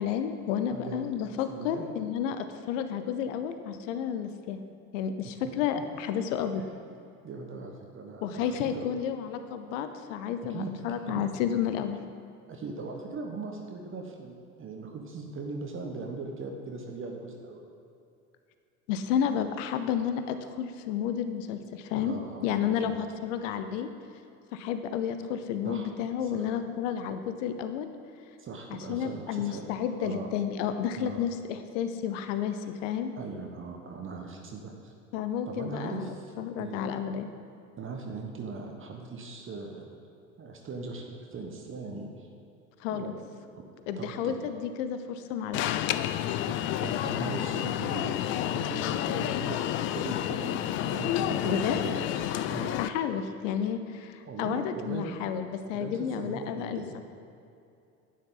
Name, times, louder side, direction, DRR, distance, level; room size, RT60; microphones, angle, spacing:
voice 1, 0.0-4.6 4.9-6.6 8.2-12.0 18.9-22.1 22.4-23.9 24.5-27.9 28.7-33.1 35.1-37.3 42.8-43.1 43.9-45.9 51.4-51.8 52.8-57.0, left 8 dB, 60° left, 9 dB, 0.9 m, -31 dB
voice 2, 0.7-1.0 1.5-1.8 5.2-5.3 7.2-9.0 10.5-11.2 12.5-17.6 21.9-23.0 25.6-25.9 26.2-26.5 28.4-29.7 30.0-30.3 31.0-31.2 33.2-34.9 35.5-36.3 36.6-36.8 37.8-39.8 40.4-42.3 42.9-43.1 43.5-43.6 44.0-44.4 46.5-52.8 54.3-55.2 55.7-57.0, right 4 dB, 30° right, 2 dB, 1.2 m, -39 dB
Alarm, 45.5-52.9, left 12 dB, 30° left, 0.4 m, -30 dB
11.5 x 9.5 x 3.9 m, 2.6 s
figure-of-eight pair, 75°, 43 cm